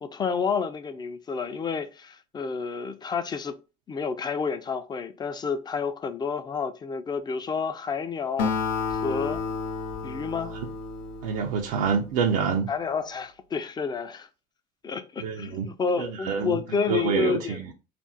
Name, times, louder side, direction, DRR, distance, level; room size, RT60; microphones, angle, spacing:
voice 1, 0.0-3.6 3.9-8.6 8.9-9.4 10.0-10.5 12.7-14.3 14.8-17.6, left 5 dB, 20° left, 0.4 m, -30 dB
Acoustic guitar, 8.4-12.0, left 5 dB, 90° left, 0.6 m, -31 dB
voice 2, 11.2-12.7 15.2-15.7 16.0-16.6 16.9-17.6, right 6 dB, 90° right, 0.5 m, -26 dB
2.5 x 2.0 x 3.8 m
supercardioid pair, 90°, 19 cm